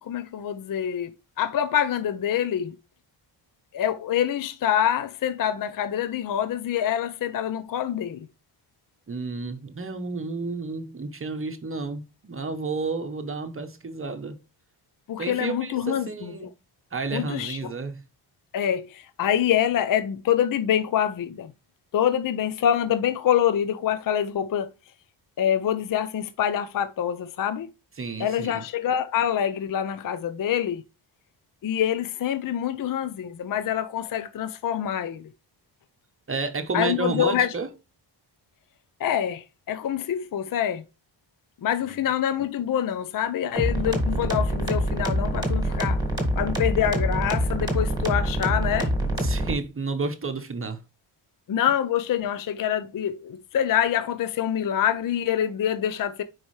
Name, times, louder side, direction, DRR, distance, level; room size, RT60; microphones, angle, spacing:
voice 1, 0.0-2.7 3.7-8.3 15.1-16.5 17.1-17.7 18.5-21.5 21.9-24.7 25.4-27.7 28.2-30.8 31.6-35.3 36.7-37.5 39.0-40.8 41.6-46.0 46.3-48.9 51.5-56.2, left 10 dB, 45° left, 0.5 m, -26 dB
voice 2, 9.1-14.4 15.2-16.5 16.9-18.0 28.0-28.6 36.3-37.7 41.8-42.0 49.2-50.8, right 4 dB, 25° right, 0.9 m, -31 dB
sound 1, 43.6-49.5, equal, 10° right, 1.7 m, -25 dB
9.7 x 4.7 x 3.2 m
wide cardioid pair, 150°, 47 cm